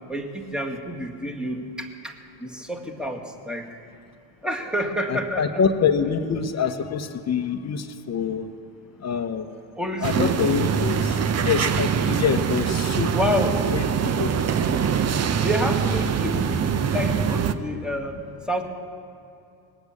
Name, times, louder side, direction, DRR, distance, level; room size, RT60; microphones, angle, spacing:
voice 1, 0.1-3.7 4.4-5.6 9.8-10.4 13.1-13.6 15.4-16.6 16.9-18.2 18.5-18.6, equal, ahead, 2 dB, 2.0 m, -28 dB
voice 2, 5.1-8.5 9.0-9.5 10.0-13.2 13.7-14.7, left 6 dB, 35° left, 9 dB, 1.0 m, -26 dB
sound 1, 10.0-17.5, right 7 dB, 30° right, 0.8 m, -23 dB
20.0 x 8.1 x 8.6 m, 2.6 s
supercardioid pair, 85°, 49 cm